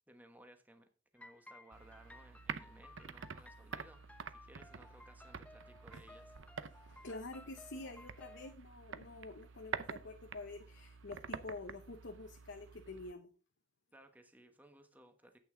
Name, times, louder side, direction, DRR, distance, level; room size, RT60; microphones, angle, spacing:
voice 1, 0.1-6.9 13.9-15.4, right 1 dB, 10° right, 1.2 m, -61 dB
sound 1, 1.2-8.6, left 2 dB, 5° left, 0.5 m, -59 dB
sound 2, 1.7-13.1, right 6 dB, 65° right, 0.7 m, -48 dB
voice 2, 6.8-13.3, left 2 dB, 60° left, 0.9 m, -48 dB
10.5 x 8.6 x 3.8 m
head